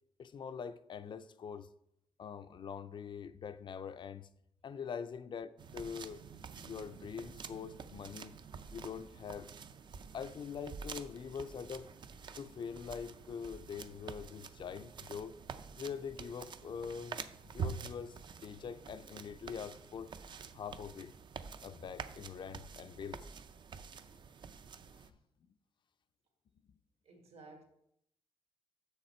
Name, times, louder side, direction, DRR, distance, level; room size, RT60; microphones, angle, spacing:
voice 1, 0.2-1.7 2.2-4.3 4.6-6.2 6.6-8.3 8.7-9.5 10.1-11.9 12.4-15.3 15.8-18.2 18.4-20.1 20.5-21.1 21.6-23.2, left 6 dB, 45° left, 0.4 m, -44 dB
sound 1, 5.6-25.1, right 6 dB, 45° right, 0.4 m, -47 dB
voice 2, 27.0-27.6, right 3 dB, 70° right, 1.7 m, -54 dB
7.2 x 6.5 x 4.3 m
wide cardioid pair, 155°, 11 cm